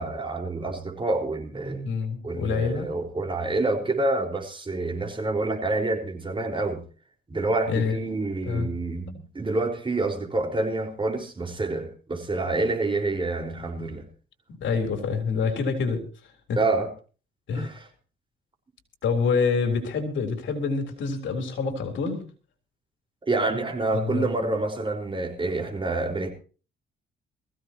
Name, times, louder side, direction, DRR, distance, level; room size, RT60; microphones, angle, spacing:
voice 1, 0.0-1.9 2.2-6.8 7.3-14.1 16.6-16.9 17.5-17.8 23.2-26.3, right 2 dB, 25° right, 4.7 m, -27 dB
voice 2, 1.8-2.9 7.7-8.0 8.5-8.7 14.6-16.0 16.5-16.6 17.5-17.7 19.0-22.2 23.9-24.3, left 5 dB, 70° left, 3.8 m, -26 dB
22.0 x 15.5 x 3.0 m
cardioid pair, 90°, 20 cm